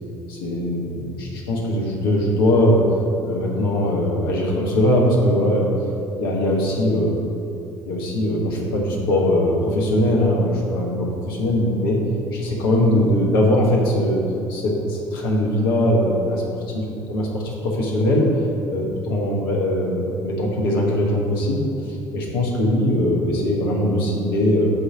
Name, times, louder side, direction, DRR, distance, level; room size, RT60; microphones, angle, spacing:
voice 1, 0.3-2.9 3.2-5.7 6.2-7.1 7.8-12.0 12.3-14.2 14.5-16.8 17.1-18.3 18.7-21.7 22.1-24.7, left 1 dB, 75° left, -2 dB, 1.4 m, -20 dB
8.4 x 3.2 x 6.0 m, 2.9 s
hypercardioid pair, 55°, 12 cm